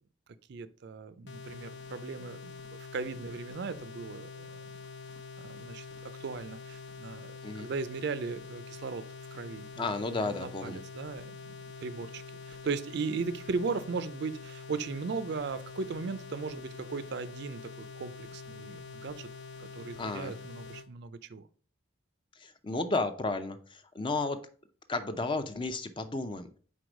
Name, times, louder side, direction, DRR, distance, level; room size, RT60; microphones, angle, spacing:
voice 1, 0.5-2.6 2.9-4.6 5.4-9.0 9.3-19.3 19.6-21.4, right 4 dB, 55° right, 0.4 m, -37 dB
sound 1, 1.3-20.9, left 5 dB, 60° left, 0.7 m, -46 dB
voice 2, 9.8-10.8 20.0-20.4 22.4-24.5 24.9-26.6, left 3 dB, 25° left, 0.5 m, -33 dB
4.7 x 4.2 x 5.1 m
head